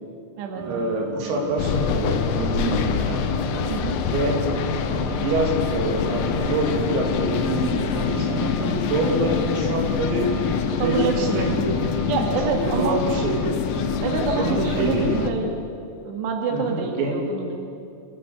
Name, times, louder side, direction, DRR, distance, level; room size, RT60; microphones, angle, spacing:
sound 1, 0.5-15.3, right 3 dB, 45° right, 2.2 m, -33 dB
voice 1, 0.6-3.3 4.0-4.4 4.9-10.3 10.7-12.0 12.4-13.6 14.2-15.4 16.5-17.2, right 2 dB, 85° right, 0 dB, 5.7 m, -26 dB
sound 2, 1.6-15.3, left 8 dB, 90° left, 3.8 m, -26 dB
voice 2, 10.8-11.5 12.1-13.0 14.0-15.5 16.0-17.6, right 5 dB, 60° right, 1 dB, 3.9 m, -27 dB
28.0 x 15.5 x 6.8 m, 2.5 s
omnidirectional pair, 5.9 m